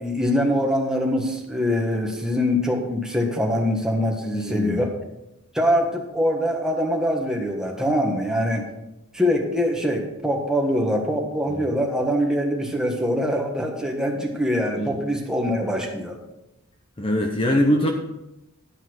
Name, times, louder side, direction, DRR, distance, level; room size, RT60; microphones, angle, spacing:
voice 1, 0.0-4.9 5.5-8.6 9.1-16.2, equal, 5° right, 1 dB, 1.5 m, -23 dB
voice 2, 4.3-4.8 11.5-11.7 14.7-14.9 17.0-17.9, equal, 25° left, 3 dB, 0.8 m, -23 dB
11.5 x 5.6 x 6.2 m, 0.93 s
head